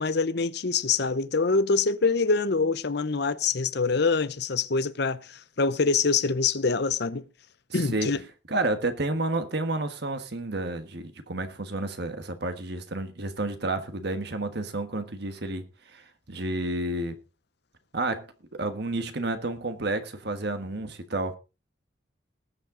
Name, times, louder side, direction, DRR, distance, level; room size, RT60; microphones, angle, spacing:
voice 1, 0.0-7.3 7.7-8.2, left 4 dB, 55° left, 0.7 m, -25 dB
voice 2, 7.7-8.1 8.5-15.6 15.9-17.2 17.9-18.2 18.5-21.3, right 2 dB, 55° right, 1.4 m, -30 dB
19.5 x 7.4 x 3.8 m
head